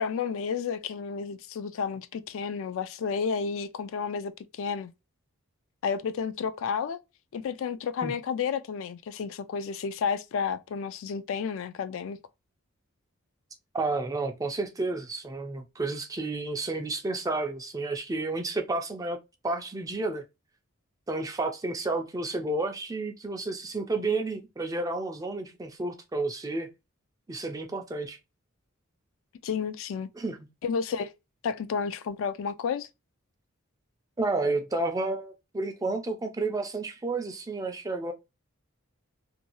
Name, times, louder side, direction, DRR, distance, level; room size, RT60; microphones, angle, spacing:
voice 1, 0.0-4.9 5.8-7.0 7.3-12.2 29.4-30.1 30.6-31.1 31.4-32.9, left 6 dB, 65° left, 0.3 m, -31 dB
voice 2, 13.7-19.2 19.4-20.2 21.1-26.7 27.3-28.2 30.2-30.4 34.2-38.1, right 2 dB, 15° right, 0.4 m, -31 dB
2.6 x 2.3 x 2.8 m
head